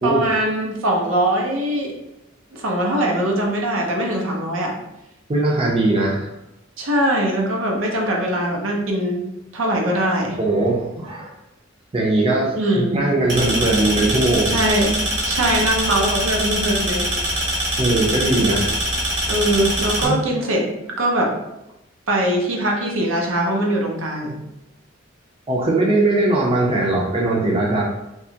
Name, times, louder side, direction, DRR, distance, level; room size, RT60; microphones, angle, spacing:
voice 1, 0.0-1.9 2.5-4.7 6.8-9.2 9.5-10.4 12.6-13.0 14.5-15.0 15.2-17.1 17.5-17.6 19.3-21.3 22.1-24.4, right 1 dB, 90° right, 0 dB, 0.6 m, -21 dB
voice 2, 5.3-6.3 10.4-11.3 11.9-14.6 17.8-18.7 20.0-20.2 25.5-27.8, right 2 dB, 30° right, -3 dB, 0.5 m, -20 dB
sound 1, 13.3-20.0, right 1 dB, 60° right, 1.1 m, -23 dB
2.8 x 2.3 x 2.7 m, 0.91 s
head